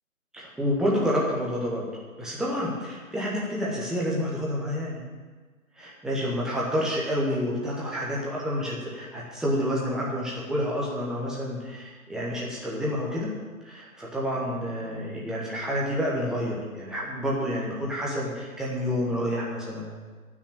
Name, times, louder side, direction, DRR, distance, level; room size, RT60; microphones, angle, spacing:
voice 1, 0.3-1.9 2.2-5.0 5.8-13.3 13.6-19.9, equal, ahead, -5 dB, 0.9 m, -29 dB
13.0 x 6.2 x 8.9 m, 1.4 s
figure-of-eight pair, 145°, 42 cm